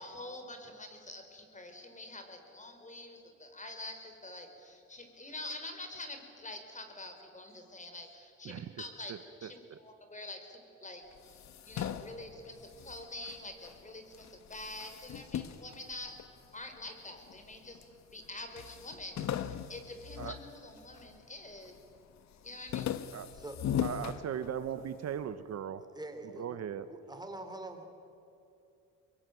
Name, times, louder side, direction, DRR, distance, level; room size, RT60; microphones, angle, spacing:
voice 1, 0.0-16.2 16.5-21.7 22.4-22.9, left 2 dB, 25° left, 6 dB, 4.8 m, -46 dB
sound 1, 11.1-13.8 14.1-16.6 17.2-17.9 18.2-18.3 18.6-21.1 21.5-22.0 22.3-24.9, left 10 dB, 65° left, 1.2 m, -39 dB
voice 2, 23.8-25.8 26.4-26.9, right 9 dB, 60° right, 12 dB, 1.0 m, -38 dB
voice 3, 25.8-26.6 26.9-27.8, right 2 dB, 15° right, 5 dB, 3.7 m, -44 dB
24.5 x 22.0 x 9.3 m, 2.7 s
cardioid pair, 90°, 30 cm